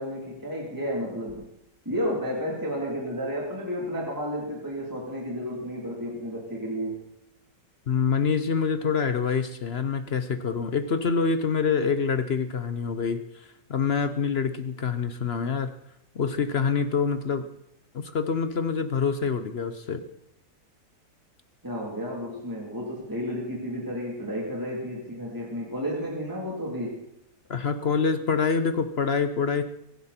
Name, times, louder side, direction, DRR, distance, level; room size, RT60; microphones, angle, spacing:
voice 1, 0.0-1.5 1.8-7.0 21.6-27.0, equal, 10° right, -3 dB, 3.3 m, -32 dB
voice 2, 7.9-15.7 16.1-17.4 17.9-20.0 27.5-29.6, left 5 dB, 55° left, 10 dB, 0.7 m, -26 dB
23.5 x 11.0 x 4.4 m, 0.79 s
omnidirectional pair, 2.0 m